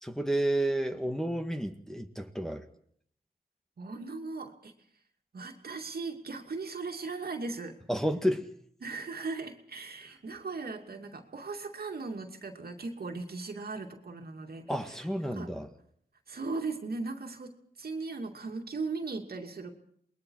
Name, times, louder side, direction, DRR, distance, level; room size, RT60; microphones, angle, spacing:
voice 1, 0.0-2.6 7.9-8.5 14.7-15.7, right 1 dB, 5° left, 4 dB, 1.9 m, -31 dB
voice 2, 3.8-4.7 5.3-7.8 8.8-14.6 15.3-15.5 16.3-17.5 17.8-19.7, right 3 dB, 65° right, 3 dB, 2.6 m, -38 dB
28.0 x 20.5 x 4.8 m, 0.65 s
cardioid pair, 60°, 17 cm